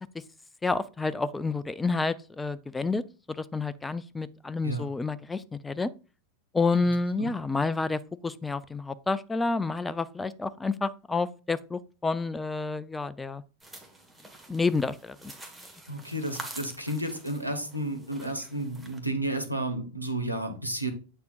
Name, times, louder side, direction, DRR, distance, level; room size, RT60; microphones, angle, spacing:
voice 1, 0.6-3.0 3.3-5.9 6.5-13.4 14.5-15.3, left 3 dB, 10° left, 0.4 m, -29 dB
sound 1, 13.6-19.0, right 2 dB, 5° right, 1.4 m, -46 dB
voice 2, 15.9-20.9, right 1 dB, 90° right, 1.2 m, -32 dB
8.1 x 6.7 x 2.4 m
figure-of-eight pair, 90°, 0 cm